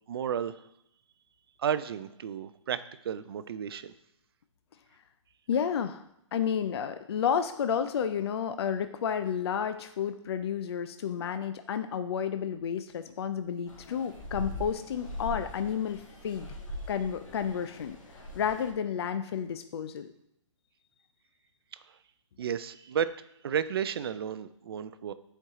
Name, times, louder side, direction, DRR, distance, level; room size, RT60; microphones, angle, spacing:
voice 1, 0.1-0.7 1.6-3.9 22.4-23.1 23.4-25.1, right 8 dB, 50° right, 13 dB, 0.4 m, -32 dB
voice 2, 5.5-6.0 6.3-16.5 16.9-18.0 18.3-20.1, left 8 dB, 55° left, 10 dB, 0.4 m, -31 dB
sound 1, 13.7-18.7, left 1 dB, 90° left, 1.8 m, -41 dB
7.8 x 4.5 x 3.6 m, 0.80 s
hypercardioid pair, 165°, 16 cm